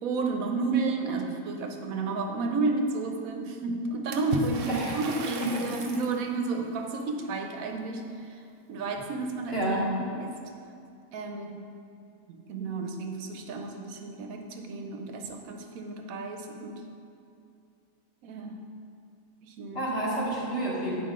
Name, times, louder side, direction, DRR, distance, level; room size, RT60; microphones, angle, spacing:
voice 1, 0.0-8.4 8.7-9.6 10.0-10.4 11.1-11.7 12.3-16.9 18.2-18.7 19.4-19.9, right 3 dB, 85° right, 4 dB, 1.1 m, -32 dB
Water / Splash splatter, 4.1-6.2, right 3 dB, 60° right, 0.6 m, -35 dB
voice 2, 5.4-5.7 9.5-9.8 19.7-21.0, right 2 dB, 45° left, -8 dB, 1.9 m, -29 dB
9.3 x 4.6 x 3.7 m, 2.5 s
omnidirectional pair, 1.4 m